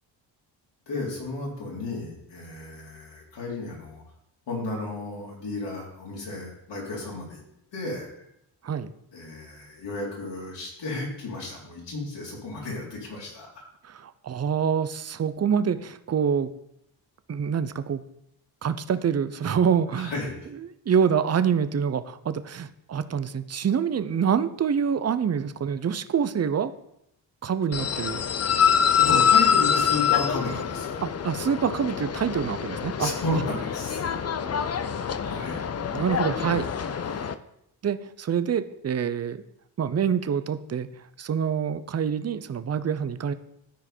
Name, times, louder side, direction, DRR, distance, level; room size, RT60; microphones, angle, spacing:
voice 1, 0.9-4.0 4.5-7.4 7.7-8.1 9.1-13.5 19.9-20.3 27.9-28.0 29.0-31.0 33.0-34.0 34.9-35.6, left 2 dB, 65° left, -3 dB, 4.0 m, -33 dB
voice 2, 13.9-16.5 17.3-18.0 18.6-20.1 20.5-26.7 27.4-28.2 31.0-33.1 35.9-36.7 36.9-37.1 37.8-39.4 39.8-40.9 41.2-43.3, right 7 dB, 35° right, 12 dB, 0.7 m, -26 dB
sound 1, 27.7-37.3, left 8 dB, 35° left, 0.7 m, -25 dB
13.5 x 4.9 x 4.5 m, 0.79 s
supercardioid pair, 60°, 46 cm